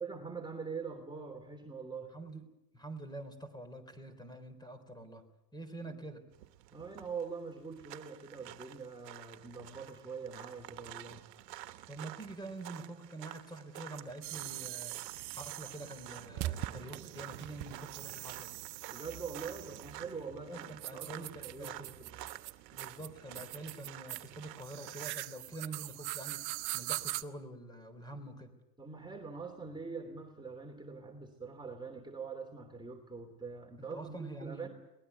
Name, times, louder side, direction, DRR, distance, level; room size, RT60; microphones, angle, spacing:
voice 1, 0.0-2.2 5.9-6.0 6.7-11.2 18.9-22.2 28.8-34.7, right 5 dB, 10° right, 1 dB, 3.1 m, -44 dB
voice 2, 2.1-2.5 2.7-5.2 5.5-6.2 11.9-14.9 15.3-18.6 20.3-21.9 22.7-26.4 26.7-28.5 33.8-34.7, right 2 dB, 10° left, 11 dB, 3.9 m, -46 dB
sound 1, 6.3-25.1, right 14 dB, 75° right, 1.5 m, -50 dB
sound 2, 14.2-27.2, right 17 dB, 50° right, 1.1 m, -42 dB
23.0 x 19.0 x 8.2 m, 0.92 s
hypercardioid pair, 95°, 49 cm